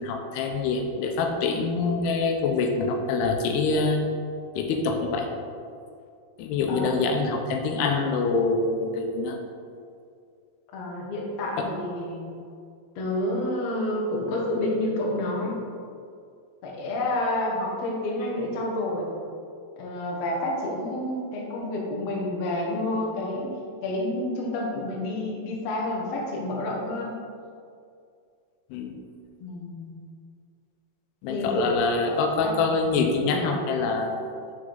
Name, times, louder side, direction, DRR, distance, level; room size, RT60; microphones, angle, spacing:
voice 1, 0.0-4.0 4.6-5.3 6.4-9.4 11.6-11.7 28.7-29.0 31.2-34.3, left 4 dB, 85° left, 3 dB, 2.7 m, -25 dB
voice 2, 10.7-12.4 12.9-15.6 16.6-19.1 19.8-23.6 23.8-27.2 29.4-29.9 31.3-31.7 32.0-32.6, left 1 dB, 70° left, -2 dB, 1.5 m, -29 dB
6.8 x 6.3 x 3.8 m, 2.3 s
omnidirectional pair, 4.7 m